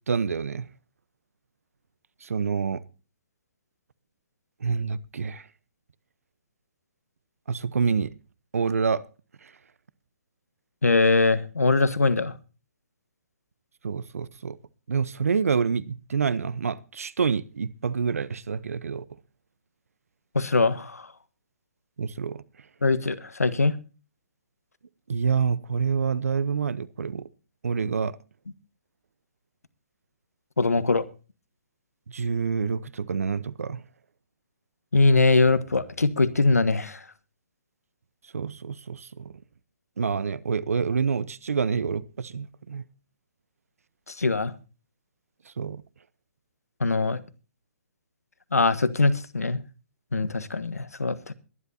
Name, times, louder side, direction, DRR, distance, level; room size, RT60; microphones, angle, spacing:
voice 1, 0.1-0.7 2.2-2.8 4.6-5.4 7.5-8.1 8.5-9.0 9.4-9.5 13.8-14.6 14.9-19.0 22.0-22.4 25.1-27.3 27.6-28.2 32.1-33.8 38.3-39.3 40.0-42.8 45.6-45.8, right 5 dB, 70° right, 0.9 m, -27 dB
voice 2, 10.8-12.3 20.3-21.1 22.8-23.8 30.6-31.0 34.9-37.0 44.1-44.5 46.8-47.2 48.5-49.6 50.1-51.3, left 3 dB, 85° left, 1.4 m, -22 dB
22.0 x 11.5 x 2.8 m
figure-of-eight pair, 130°, 8 cm